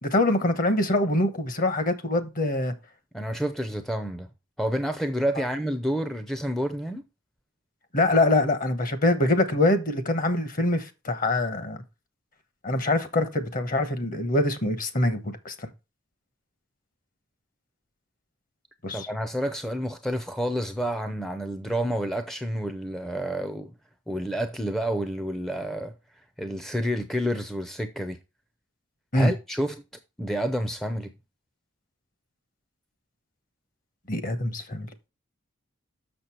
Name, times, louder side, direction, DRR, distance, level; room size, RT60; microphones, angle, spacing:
voice 1, 0.0-2.7 7.9-11.8 12.6-15.5 18.8-19.1 29.1-29.3 34.1-34.9, left 2 dB, 40° left, 1.1 m, -24 dB
voice 2, 3.1-4.3 4.6-7.0 18.9-23.7 24.1-25.9 26.4-28.2 29.1-29.8 30.2-31.1, equal, ahead, 0.5 m, -29 dB
6.7 x 6.5 x 4.3 m
head